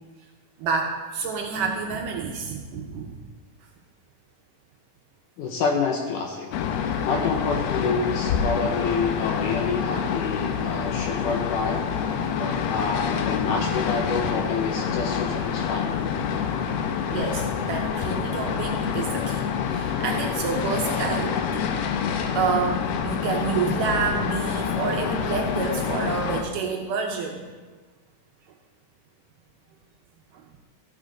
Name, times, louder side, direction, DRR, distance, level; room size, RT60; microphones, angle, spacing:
voice 1, 0.6-3.2 12.4-12.5 17.1-21.8 22.2-27.5 30.3-30.4, right 5 dB, 70° right, 2 dB, 2.1 m, -28 dB
voice 2, 5.4-6.5 7.1-11.8 12.6-16.2, left 4 dB, 70° left, 2 dB, 2.0 m, -28 dB
sound 1, 6.5-26.4, left 7 dB, 90° left, 2.8 m, -27 dB
14.0 x 8.7 x 4.0 m, 1.3 s
omnidirectional pair, 4.4 m